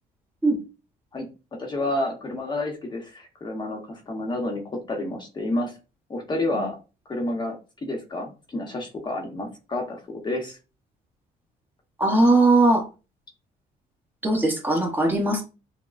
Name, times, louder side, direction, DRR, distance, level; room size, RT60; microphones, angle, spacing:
voice 1, 1.6-5.7 6.1-6.8 7.1-10.6, left 2 dB, 25° left, 2 dB, 0.9 m, -30 dB
voice 2, 12.0-12.8 14.2-15.4, right 2 dB, 10° right, 0 dB, 0.9 m, -19 dB
5.9 x 2.2 x 2.5 m, 0.31 s
cardioid pair, 130°, 17 cm